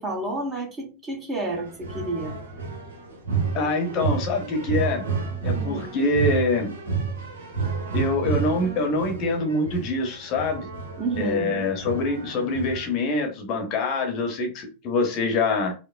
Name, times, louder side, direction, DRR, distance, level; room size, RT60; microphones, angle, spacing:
voice 1, 0.0-2.4 5.5-5.9 11.0-11.5, right 2 dB, 20° right, 0 dB, 1.2 m, -30 dB
sound 1, 1.5-12.9, right 5 dB, 65° right, 1.0 m, -30 dB
voice 2, 3.5-5.1 5.4-6.7 7.9-10.7 11.2-15.7, left 2 dB, 40° left, 3 dB, 0.9 m, -25 dB
4.7 x 2.1 x 2.4 m, 0.32 s
figure-of-eight pair, 90°, 0 cm